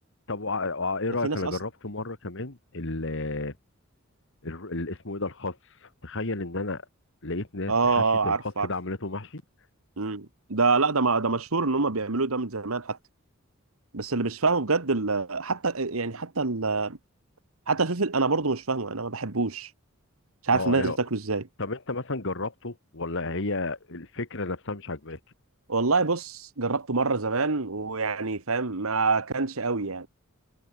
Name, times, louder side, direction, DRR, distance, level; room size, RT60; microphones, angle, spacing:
voice 1, 0.3-3.5 4.4-5.6 5.8-6.8 7.2-9.4 20.5-21.0 21.6-25.2, left 2 dB, 65° left, 2.4 m, -32 dB
voice 2, 7.7-8.7 10.0-13.0 13.9-17.0 17.7-19.7 20.4-21.5 25.7-30.1, right 3 dB, 75° right, 1.6 m, -26 dB
head